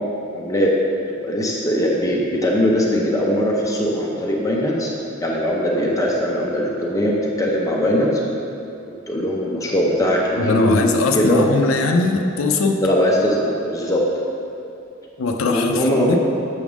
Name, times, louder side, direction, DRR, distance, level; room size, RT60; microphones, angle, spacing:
voice 1, 0.3-0.7 1.1-4.9 5.2-8.2 9.1-11.4 12.8-14.0 15.5-16.1, equal, 15° left, -3 dB, 0.6 m, -20 dB
voice 2, 10.4-12.8 15.2-16.2, left 3 dB, 85° left, 4 dB, 0.5 m, -20 dB
7.0 x 3.5 x 6.1 m, 2.8 s
head